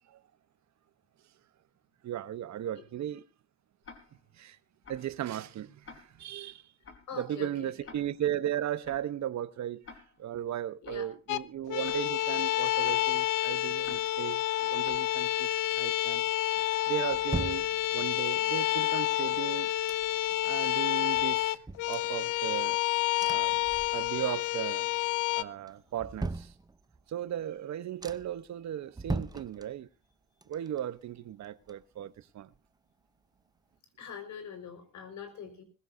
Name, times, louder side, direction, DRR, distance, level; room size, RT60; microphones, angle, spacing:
voice 1, 2.0-3.2 4.3-4.6 4.9-6.7 7.1-9.8 10.2-16.2 16.9-17.7 17.9-19.7 20.4-21.6 21.9-22.8 23.3-23.5 23.9-24.9 25.4-26.5 27.1-29.9 30.5-32.5, right 11 dB, 65° right, 1.0 m, -36 dB
Tick-tock, 3.8-4.3 4.8-5.2 5.8-6.3 6.8-7.2 7.8-8.3 8.8-9.2 9.8-10.3 10.8-11.2 11.8-12.3 12.8-13.2 13.8-14.3 14.8-15.2, left 4 dB, 45° left, 4.2 m, -52 dB
voice 2, 7.1-7.9 10.8-11.1 34.0-35.6, left 7 dB, 70° left, 5.3 m, -43 dB
sound 1, 11.3-11.4 11.7-25.4, left 15 dB, 85° left, 0.7 m, -29 dB
sound 2, 16.6-18.3 19.0-20.5 20.8-20.9 21.2-22.8 23.2-24.4 24.7-25.2 25.6-27.1 27.6-27.7 28.0-28.5 28.9-30.1 30.4-32.2 32.5-32.6, right 3 dB, 15° right, 0.7 m, -40 dB
20.5 x 16.0 x 2.7 m
cardioid pair, 90°, 30 cm